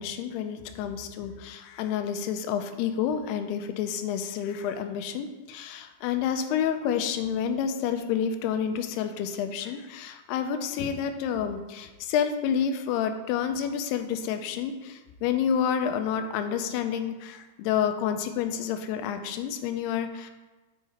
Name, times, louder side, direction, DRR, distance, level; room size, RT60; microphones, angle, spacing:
voice 1, 0.0-20.3, left 8 dB, 85° left, 7 dB, 2.6 m, -29 dB
9.1 x 4.7 x 4.2 m, 1.2 s
omnidirectional pair, 4.6 m